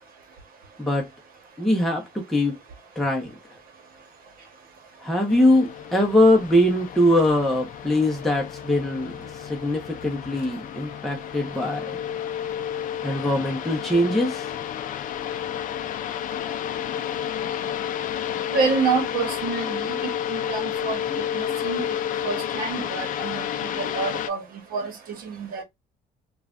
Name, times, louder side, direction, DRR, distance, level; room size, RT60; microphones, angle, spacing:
voice 1, 1.6-2.6 3.0-3.3 5.0-9.1 9.4-12.0 13.0-14.5, left 1 dB, ahead, 0.8 m, -22 dB
sound 1, 5.3-24.3, left 9 dB, 50° left, 0.4 m, -31 dB
voice 2, 18.5-21.0 21.3-21.8 22.2-23.4 23.8-24.4 24.7-25.6, right 4 dB, 60° right, 1.1 m, -27 dB
3.1 x 2.3 x 2.4 m
cardioid pair, 110°, 17 cm